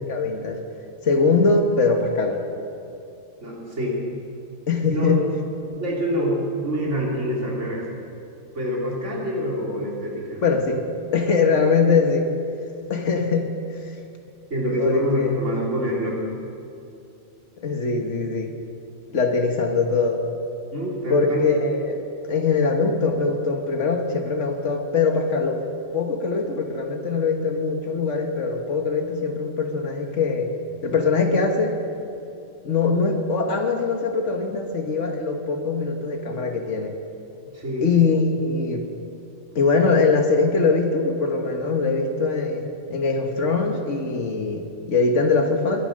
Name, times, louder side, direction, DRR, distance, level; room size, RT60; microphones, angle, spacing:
voice 1, 0.1-0.6 1.0-2.4 4.7-5.2 10.4-10.8 11.1-12.3 12.9-14.0 14.8-15.5 17.6-18.5 19.1-20.2 21.1-22.0 22.3-25.6 25.9-30.5 30.8-31.8 32.6-37.0 37.8-38.9 39.6-45.9, left 4 dB, 75° left, 3 dB, 1.7 m, -22 dB
voice 2, 3.4-4.0 4.9-5.1 5.7-6.4 6.6-7.8 8.5-10.4 14.5-16.2 20.7-21.5 37.5-37.9, equal, 75° right, -4 dB, 3.6 m, -26 dB
22.0 x 10.0 x 6.6 m, 2.6 s
omnidirectional pair, 1.3 m